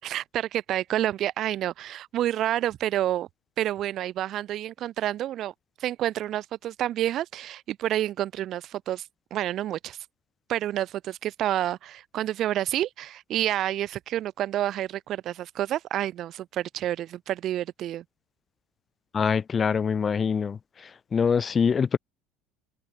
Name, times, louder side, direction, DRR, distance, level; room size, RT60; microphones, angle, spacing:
voice 1, 0.0-3.3 3.6-5.5 5.8-10.0 10.5-18.0, right 12 dB, 55° right, 6.4 m, -29 dB
voice 2, 19.1-20.6 21.1-22.0, left 6 dB, 35° left, 7.2 m, -24 dB
supercardioid pair, 85°, 0 cm